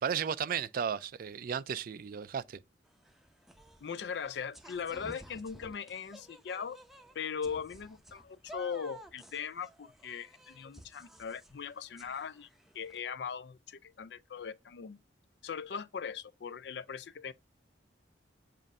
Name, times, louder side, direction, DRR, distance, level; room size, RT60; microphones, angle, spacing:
voice 1, 0.0-2.6, right 7 dB, 50° right, 0.3 m, -34 dB
sound 1, 2.9-13.0, right 1 dB, ahead, 0.6 m, -54 dB
voice 2, 3.8-6.8 7.1-12.5 12.7-15.0 15.4-17.3, left 6 dB, 65° left, 0.4 m, -39 dB
7.4 x 2.6 x 5.2 m
head